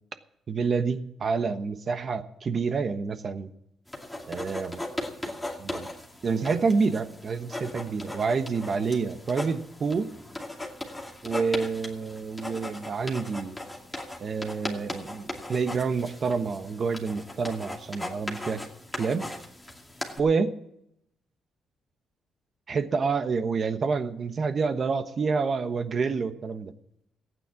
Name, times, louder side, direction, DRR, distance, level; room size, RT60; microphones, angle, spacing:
voice 1, 0.5-3.5 4.3-4.8 5.6-5.9 6.2-10.1 11.2-13.6 14.2-18.6 19.0-19.2 20.2-20.5 22.7-26.7, right 5 dB, 45° right, 10 dB, 1.1 m, -28 dB
sound 1, 3.9-20.2, left 1 dB, 5° left, 2.5 m, -38 dB
14.5 x 9.3 x 7.2 m, 0.78 s
cardioid pair, 90°, 0 cm